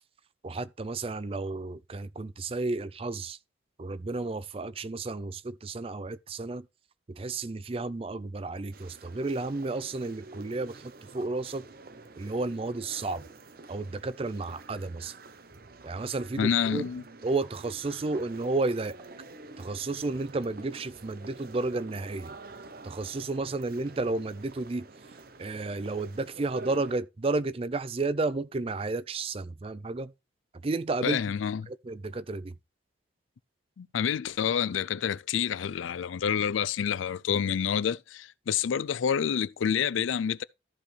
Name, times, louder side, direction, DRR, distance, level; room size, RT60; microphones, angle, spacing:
voice 1, 0.4-3.4 3.8-6.7 7.1-11.7 12.2-13.3 13.7-15.1 15.8-16.8 17.2-18.9 19.6-22.4 22.8-24.9 25.4-30.1 30.5-31.2 31.7-32.5, right 3 dB, 30° right, 0.4 m, -32 dB
sound 1, 8.7-27.0, right 3 dB, 50° right, 0.8 m, -48 dB
voice 2, 16.4-17.0 31.0-31.6 33.8-40.4, left 8 dB, 85° left, 0.4 m, -28 dB
14.0 x 5.0 x 3.3 m
head